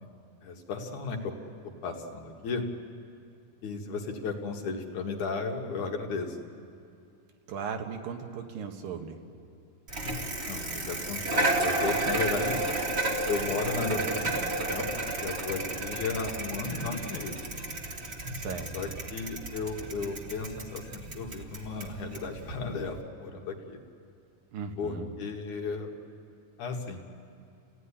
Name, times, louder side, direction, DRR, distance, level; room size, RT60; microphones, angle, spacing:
voice 1, 0.4-1.3 1.8-2.7 3.6-6.4 10.0-10.2 10.5-12.6 13.3-17.4 18.7-23.8 24.8-25.9 26.6-27.1, left 4 dB, 65° left, 2 dB, 3.0 m, -35 dB
voice 2, 7.5-9.2 18.3-18.7 24.5-25.1, right 6 dB, 80° right, 4 dB, 3.2 m, -37 dB
Bicycle, 9.9-23.0, right 2 dB, 25° right, 1.4 m, -32 dB
28.5 x 16.5 x 9.9 m, 2.5 s
omnidirectional pair, 3.9 m